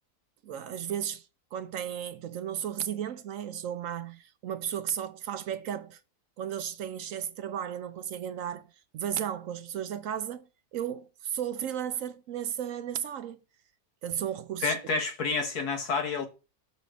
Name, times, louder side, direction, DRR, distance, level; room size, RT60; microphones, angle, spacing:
voice 1, 0.4-1.3 1.5-6.0 6.4-8.6 8.9-13.4 14.0-14.8, right 9 dB, 70° right, 0.9 m, -34 dB
voice 2, 14.6-16.3, left 4 dB, 85° left, 2.0 m, -29 dB
6.5 x 4.1 x 5.0 m
omnidirectional pair, 1.6 m